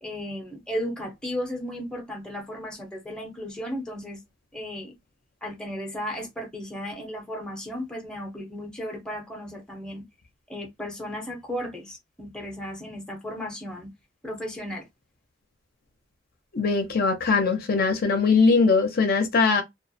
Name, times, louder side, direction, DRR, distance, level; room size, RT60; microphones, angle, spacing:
voice 1, 0.0-4.2 4.5-4.9 5.4-10.0 10.5-13.9 14.2-14.9, equal, 5° left, 0.7 m, -35 dB
voice 2, 16.5-19.6, left 4 dB, 55° left, 0.6 m, -21 dB
2.3 x 2.1 x 2.6 m
head